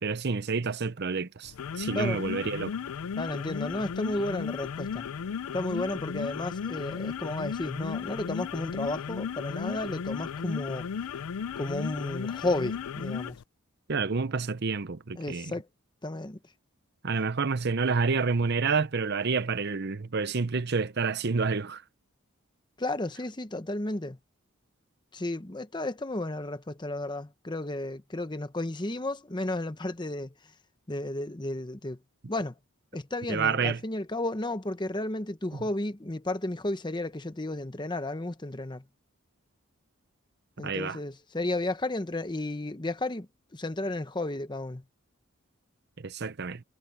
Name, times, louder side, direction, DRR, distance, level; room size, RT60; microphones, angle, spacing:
voice 1, 0.0-2.7 13.9-15.5 17.0-21.8 33.3-33.8 40.6-41.0 46.0-46.6, right 4 dB, 50° right, 0.7 m, -29 dB
sound 1, 1.4-13.4, left 6 dB, 90° left, 0.4 m, -35 dB
voice 2, 3.2-5.1 5.5-10.9 11.6-13.4 15.2-15.7 16.0-16.4 22.8-24.2 25.1-30.3 30.9-32.0 32.3-32.5 32.9-38.8 40.6-43.3 43.5-44.8, left 2 dB, 20° left, 0.9 m, -33 dB
head